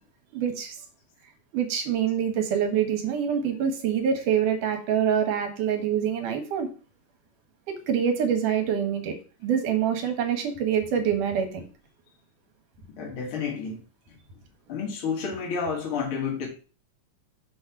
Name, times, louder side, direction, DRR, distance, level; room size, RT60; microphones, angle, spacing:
voice 1, 0.3-0.7 1.5-6.7 7.7-9.2 9.4-11.6, right 8 dB, 70° right, 2.8 m, -25 dB
voice 2, 13.0-13.8 14.7-16.5, left 6 dB, 45° left, 2.0 m, -30 dB
6.3 x 4.4 x 5.9 m
omnidirectional pair, 4.0 m